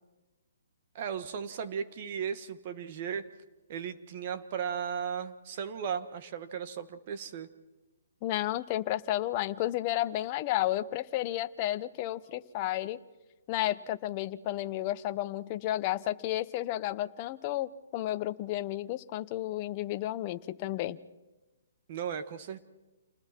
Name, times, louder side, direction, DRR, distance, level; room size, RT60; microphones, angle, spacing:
voice 1, 1.0-3.3 3.7-7.5 21.9-22.6, right 7 dB, 40° right, 10 dB, 1.8 m, -36 dB
voice 2, 8.2-13.0 13.5-21.0, left 14 dB, 30° left, 10 dB, 0.9 m, -32 dB
29.0 x 20.0 x 4.5 m, 1.1 s
hypercardioid pair, 155°, 0 cm